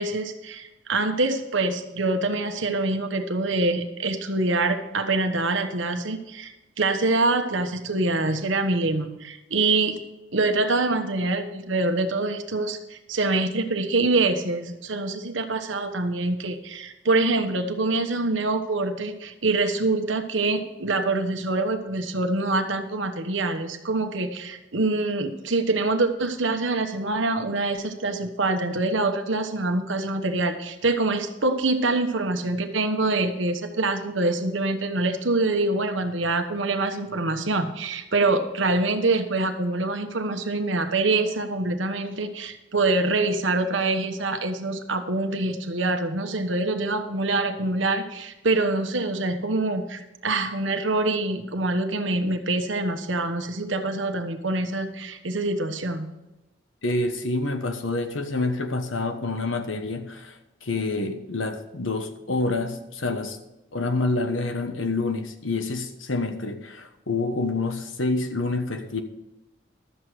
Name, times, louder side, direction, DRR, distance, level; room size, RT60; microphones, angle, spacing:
voice 1, 0.0-10.0 10.3-56.1, right 2 dB, 80° right, 1.2 m, -25 dB
voice 2, 56.8-63.4 63.7-69.0, left 2 dB, 85° left, 1.2 m, -27 dB
12.5 x 7.7 x 4.9 m
head